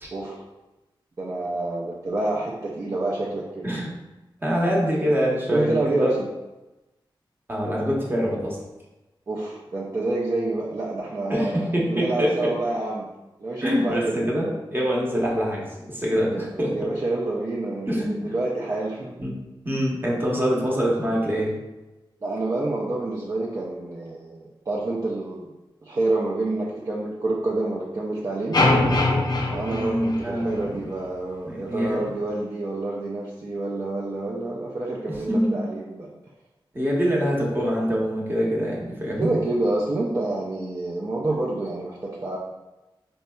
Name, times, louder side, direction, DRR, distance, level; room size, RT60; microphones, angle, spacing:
voice 1, 0.1-0.4 1.2-3.7 5.5-6.3 9.3-13.1 13.4-14.2 16.3-19.1 22.2-25.5 25.8-28.6 29.5-36.1 39.2-42.4, right 2 dB, 40° right, -4 dB, 0.4 m, -28 dB
voice 2, 4.4-6.1 7.5-8.6 11.3-12.5 13.6-16.8 17.9-18.3 19.2-19.3 19.6-21.6 29.7-30.8 31.5-32.0 35.1-35.6 36.7-39.3, equal, 25° right, -3 dB, 0.8 m, -24 dB
sound 1, 28.5-30.8, left 2 dB, 50° left, 0.4 m, -22 dB
4.1 x 2.7 x 2.2 m, 1.1 s
wide cardioid pair, 85°, 9 cm